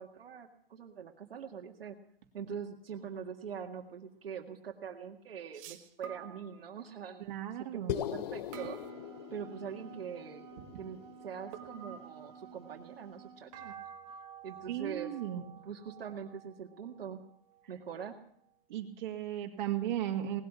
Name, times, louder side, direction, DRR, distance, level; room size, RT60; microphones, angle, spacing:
voice 1, 0.0-2.0 2.3-7.3 7.7-8.8 9.3-10.4 10.8-13.7 14.4-15.1 15.6-17.2 17.7-18.2, right 7 dB, 80° right, 2 dB, 2.0 m, -43 dB
sound 1, 2.9-3.2 5.5-7.0 8.5-9.8 11.5-12.7 13.5-18.1, right 8 dB, 35° right, 1.7 m, -51 dB
voice 2, 7.2-8.0 14.7-15.4 18.7-20.4, right 11 dB, 50° right, 3 dB, 2.5 m, -35 dB
sound 2, 7.9-12.3, left 13 dB, 45° left, 0.8 m, -41 dB
Wind instrument woodwind instrument, 8.3-13.5, right 8 dB, 20° right, 3.6 m, -53 dB
18.5 x 8.1 x 8.6 m, 0.67 s
hypercardioid pair, 150°, 29 cm